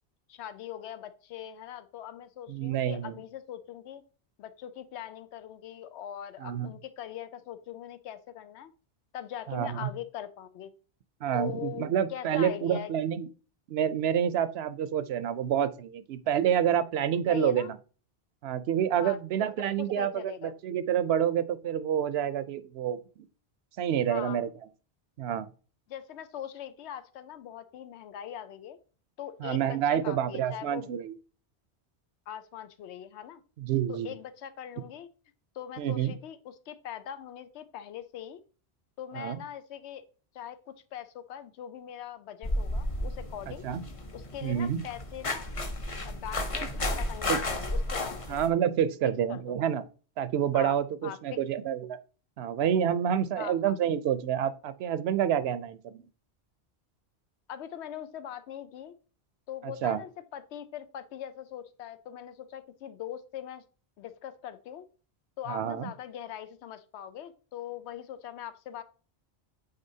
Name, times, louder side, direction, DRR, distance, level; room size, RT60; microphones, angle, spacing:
voice 1, 0.3-4.0 4.4-8.7 9.1-10.7 11.3-12.9 17.3-17.7 19.0-19.5 19.8-20.5 24.1-24.4 25.9-28.8 29.2-30.9 32.3-33.4 33.9-35.1 35.5-38.4 39.0-40.0 40.3-43.7 44.1-45.5 46.0-48.4 49.0-49.4 50.5-50.8 51.0-51.4 53.4-53.7 57.5-58.9 59.5-63.6 64.0-64.9 65.4-68.8, left 10 dB, 90° left, 0.9 m, -41 dB
voice 2, 2.5-3.1 6.4-6.7 9.5-9.9 11.2-13.3 13.7-17.8 18.4-23.0 23.8-24.5 25.2-25.5 29.4-31.1 33.6-34.1 35.8-36.1 39.2-39.4 43.6-43.8 44.4-44.8 47.3-47.4 48.3-49.8 50.2-52.0 52.4-56.1 59.6-60.0 65.5-65.9, right 9 dB, 75° right, 0.8 m, -28 dB
sound 1, 42.4-48.5, left 1 dB, 35° left, 0.8 m, -33 dB
8.7 x 4.0 x 2.7 m
omnidirectional pair, 1.1 m